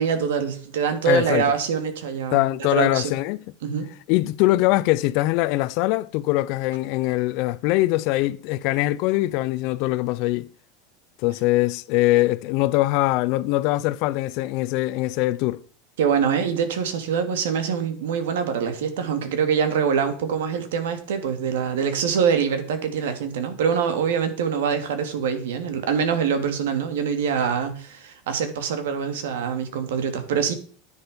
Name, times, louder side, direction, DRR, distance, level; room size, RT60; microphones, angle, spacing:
voice 1, 0.0-2.4 2.7-3.1 3.6-3.9 16.0-30.5, right 7 dB, 85° right, 2.6 m, -24 dB
voice 2, 1.1-1.5 2.3-3.4 4.1-10.5 11.2-15.6, left 18 dB, 55° left, 0.6 m, -22 dB
10.5 x 9.9 x 5.2 m
supercardioid pair, 140°, 0 cm